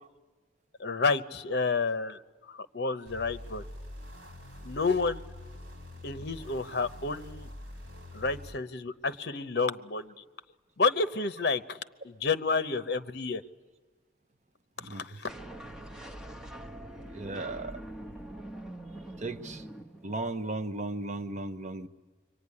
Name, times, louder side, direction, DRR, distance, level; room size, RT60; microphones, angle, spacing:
voice 1, 0.8-2.2 2.5-3.6 4.6-5.2 6.0-7.5 8.1-10.1 10.8-11.8 12.0-13.4 14.9-15.3, left 4 dB, 60° left, 11 dB, 0.8 m, -30 dB
sound 1, 3.1-8.6, left 1 dB, 75° right, 2.6 m, -45 dB
voice 2, 14.8-15.2 17.1-17.8 19.2-19.6 20.0-21.9, right 2 dB, 40° right, 10 dB, 0.8 m, -36 dB
sound 2, 15.3-20.4, right 1 dB, 5° right, 1.2 m, -44 dB
24.5 x 24.0 x 9.8 m, 1.4 s
head